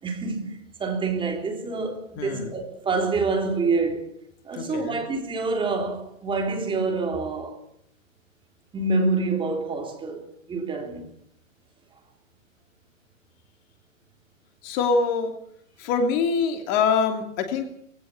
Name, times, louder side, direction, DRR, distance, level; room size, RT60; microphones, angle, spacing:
voice 1, 0.0-4.1 4.4-7.6 8.7-11.1, right 3 dB, 10° right, 3.6 m, -27 dB
voice 2, 2.2-2.5 4.5-5.0 14.6-15.3 15.8-17.6, left 5 dB, 30° left, 3.0 m, -24 dB
21.0 x 17.0 x 8.8 m
hypercardioid pair, 135°, 40 cm